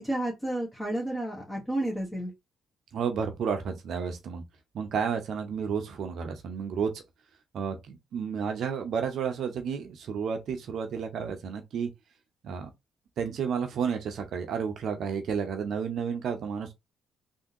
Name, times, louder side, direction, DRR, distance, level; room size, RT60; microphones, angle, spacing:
voice 1, 0.0-2.3, right 1 dB, 10° left, 1.4 m, -31 dB
voice 2, 2.9-4.4 4.7-7.0 7.5-11.9 12.4-12.7 13.2-16.7, right 6 dB, 65° right, 0.7 m, -31 dB
3.5 x 2.8 x 2.8 m
hypercardioid pair, 50°, 0 cm